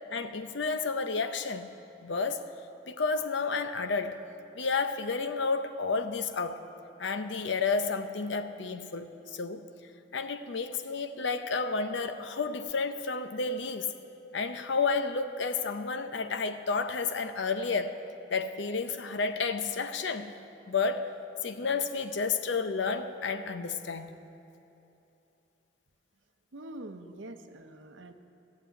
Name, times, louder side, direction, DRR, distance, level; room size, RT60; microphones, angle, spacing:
voice 1, 0.1-1.7 2.0-2.4 2.9-4.2 4.5-6.6 7.0-9.7 10.1-13.9 14.3-18.0 18.3-20.3 20.7-21.1 21.4-24.1, left 4 dB, 70° left, 9 dB, 0.7 m, -31 dB
voice 2, 26.5-28.1, right 1 dB, 85° right, 8 dB, 0.7 m, -44 dB
13.5 x 6.9 x 9.0 m, 2.9 s
head